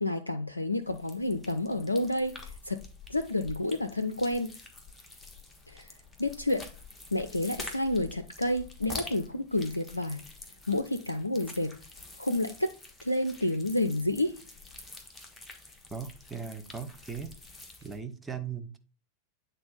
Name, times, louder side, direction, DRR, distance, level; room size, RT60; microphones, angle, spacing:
voice 1, 0.0-2.8 3.1-4.5 5.7-5.9 6.2-6.7 7.1-10.2 10.7-11.8 12.2-12.7 13.0-14.4, left 1 dB, 85° left, 0.4 m, -30 dB
sound 1, 0.8-18.0, left 2 dB, 5° left, 1.4 m, -47 dB
voice 2, 15.9-17.3 17.8-18.8, right 6 dB, 10° right, 0.8 m, -38 dB
8.6 x 3.9 x 3.9 m
figure-of-eight pair, 90°, 0 cm